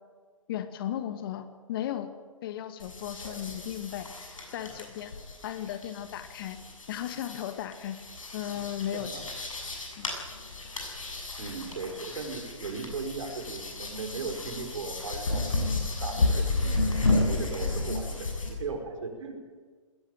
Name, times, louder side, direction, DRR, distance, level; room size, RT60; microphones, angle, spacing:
voice 1, 0.5-2.1 2.4-4.1 4.5-5.1 5.4-6.6 6.9-8.0 8.3-9.3 10.0-10.1 17.4-17.5, left 11 dB, 45° left, 10 dB, 1.8 m, -35 dB
sound 1, 2.8-18.5, left 2 dB, 75° left, 7.3 m, -32 dB
voice 2, 8.9-9.2 11.4-16.7 17.1-19.3, right 4 dB, 65° right, 5 dB, 5.0 m, -37 dB
20.0 x 17.0 x 9.2 m, 1.5 s
hypercardioid pair, 130°, 17 cm